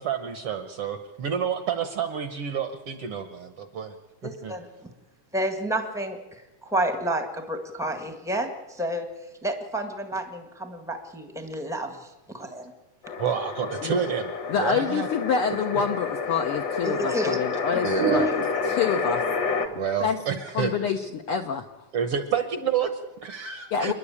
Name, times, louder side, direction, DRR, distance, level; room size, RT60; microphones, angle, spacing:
voice 1, 0.0-3.9 4.2-4.6 13.2-15.1 17.8-18.3 19.6-20.7 21.9-23.9, right 7 dB, 65° right, 1.5 m, -29 dB
voice 2, 4.2-4.9 5.3-9.1 9.4-12.7 16.8-17.4 17.7-18.4, right 1 dB, 5° right, 0.6 m, -30 dB
sound 1, 13.0-19.7, left 4 dB, 50° left, 1.4 m, -29 dB
voice 3, 14.5-19.2 20.0-20.2 20.5-21.7 23.7-23.9, left 6 dB, 70° left, 1.3 m, -27 dB
29.0 x 11.0 x 8.6 m
omnidirectional pair, 3.6 m